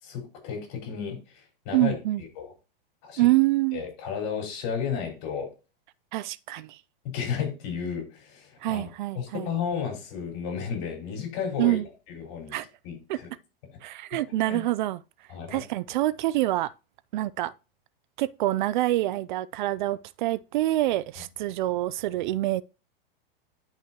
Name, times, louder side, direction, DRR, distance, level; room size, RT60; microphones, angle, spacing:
voice 1, 0.0-2.5 3.0-3.3 3.7-5.5 7.0-8.9 9.1-11.8 12.1-12.6 12.8-13.3 13.6-13.8 14.2-14.6 15.3-15.6, left 7 dB, 50° left, 5.0 m, -33 dB
voice 2, 1.7-2.2 3.2-3.8 6.1-6.8 8.6-9.5 11.6-11.8 12.5-12.7 13.1-13.2 13.8-15.0 15.5-16.7 17.1-17.5 18.2-22.6, right 16 dB, 55° right, 0.4 m, -26 dB
11.0 x 5.7 x 2.9 m
hypercardioid pair, 140°, 29 cm